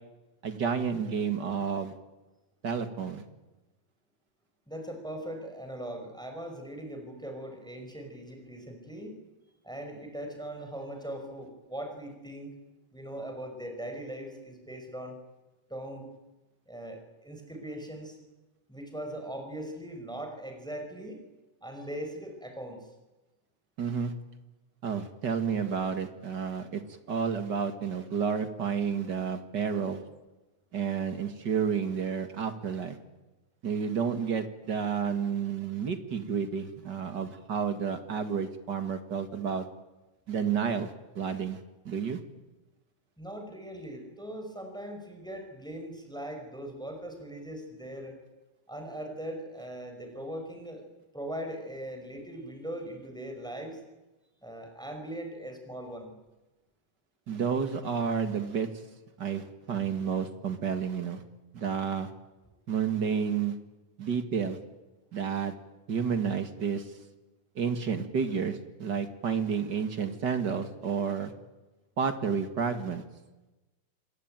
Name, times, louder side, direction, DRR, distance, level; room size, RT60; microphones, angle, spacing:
voice 1, 0.4-1.9 2.6-3.2 23.8-24.1 24.8-26.8 27.1-30.0 30.7-33.0 33.6-39.7 40.3-41.6 41.9-42.2 57.3-58.7 59.2-61.2 61.5-62.1 62.7-63.6 64.0-64.6 65.1-65.5 65.9-66.9 67.6-71.3 72.0-73.0, right 6 dB, 40° right, 9 dB, 1.8 m, -30 dB
voice 2, 4.7-9.2 9.6-12.5 12.9-15.2 15.7-16.1 16.7-18.2 18.7-21.2 21.6-22.9 43.2-48.1 48.7-50.8 51.1-53.8 54.4-56.1, right 1 dB, ahead, 4 dB, 5.4 m, -40 dB
27.5 x 21.5 x 9.2 m, 1.1 s
omnidirectional pair, 4.1 m